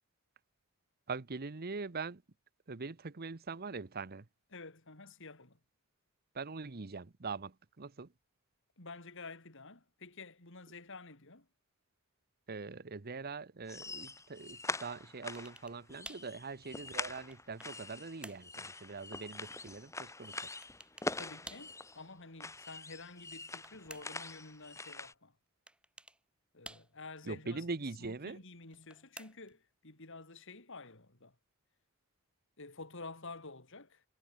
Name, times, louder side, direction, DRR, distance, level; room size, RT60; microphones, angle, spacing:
voice 1, 1.1-2.2 2.7-4.3 6.3-8.1 12.5-20.5 27.2-28.4, right 4 dB, 45° right, 0.9 m, -42 dB
voice 2, 4.5-5.6 8.8-11.5 21.2-25.3 26.5-27.6 28.0-31.3 32.6-34.0, left 3 dB, 65° left, 4.0 m, -50 dB
sound 1, 13.7-22.1 22.4-25.1, left 3 dB, 15° left, 1.8 m, -44 dB
sound 2, 15.3-15.8 16.0-16.3 17.0-17.8 18.2-18.5 20.6-21.1 21.4-21.7 23.2-24.3 25.7-26.2 26.6-27.2 28.6-29.6, right 1 dB, 5° right, 7.2 m, -52 dB
head